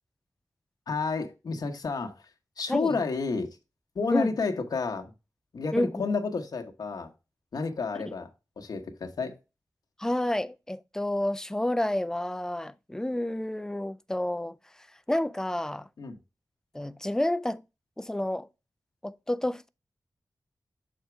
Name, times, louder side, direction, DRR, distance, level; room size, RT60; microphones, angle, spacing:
voice 1, 0.9-2.2 2.6-3.5 3.9-5.1 5.5-7.1 7.5-8.3 8.6-9.4 16.0-16.2, left 4 dB, 75° left, 1.1 m, -30 dB
voice 2, 10.0-14.6 15.1-15.9 16.7-17.6 18.0-18.5 19.0-19.7, left 1 dB, 10° left, 0.3 m, -29 dB
6.0 x 4.4 x 4.5 m
wide cardioid pair, 125°, 7 cm